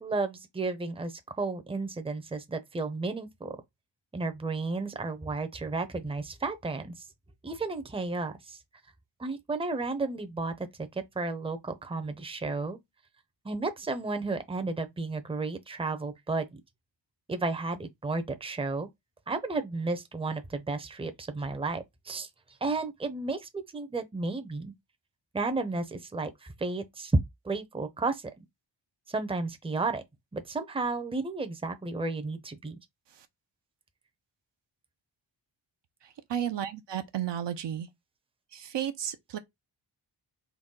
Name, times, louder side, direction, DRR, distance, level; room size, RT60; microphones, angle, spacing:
voice 1, 0.0-3.6 4.1-7.0 7.4-8.6 9.2-10.7 10.9-12.8 13.4-16.5 17.3-18.9 19.3-22.3 22.6-24.7 25.3-27.2 27.4-28.3 29.1-30.0 30.3-32.7, right 3 dB, 10° right, 0.7 m, -32 dB
voice 2, 36.0-37.9 38.5-39.4, right 10 dB, 65° right, 0.8 m, -33 dB
4.0 x 2.1 x 3.7 m
cardioid pair, 65°, 46 cm